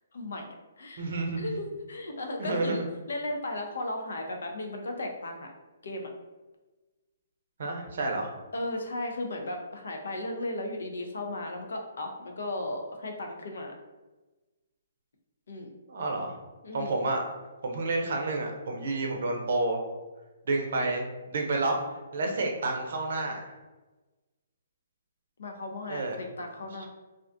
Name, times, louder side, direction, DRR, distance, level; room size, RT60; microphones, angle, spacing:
voice 1, 0.1-0.5 0.8-1.1 1.4-2.8 3.1-5.5 5.8-6.1 8.5-13.7 15.5-15.7 16.6-17.0 25.4-26.9, left 1 dB, 80° left, 3 dB, 0.5 m, -35 dB
voice 2, 1.0-1.5 2.4-2.9 7.6-8.3 15.9-16.3 16.7-17.2 17.6-19.8 20.5-21.8 22.1-23.5 25.9-26.2, right 2 dB, 65° right, 2 dB, 0.5 m, -29 dB
2.4 x 2.2 x 2.5 m, 1.2 s
hypercardioid pair, 150°, 0 cm